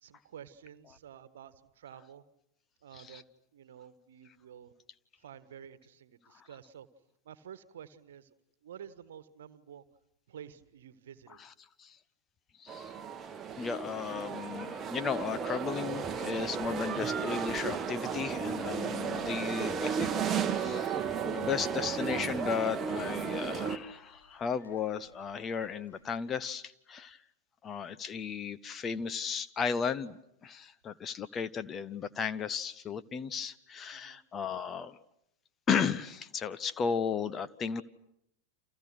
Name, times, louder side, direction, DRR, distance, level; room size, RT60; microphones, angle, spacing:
voice 1, 0.0-2.2 2.8-3.2 3.5-4.7 5.2-6.9 7.2-8.3 8.6-9.8 10.3-11.4 33.9-34.2, right 9 dB, 60° right, 14 dB, 1.5 m, -50 dB
voice 2, 2.9-3.2 6.3-6.5 11.3-11.5 11.8-12.0 12.6-12.9 13.6-20.1 20.5-27.2 27.6-35.0 35.7-37.8, left 6 dB, 25° left, 13 dB, 0.9 m, -35 dB
sound 1, 12.7-23.8, right 7 dB, 20° right, 1.4 m, -34 dB
sound 2, 17.1-26.3, left 2 dB, 75° left, 3.7 m, -56 dB
30.0 x 28.0 x 6.2 m, 0.78 s
figure-of-eight pair, 90°, 0 cm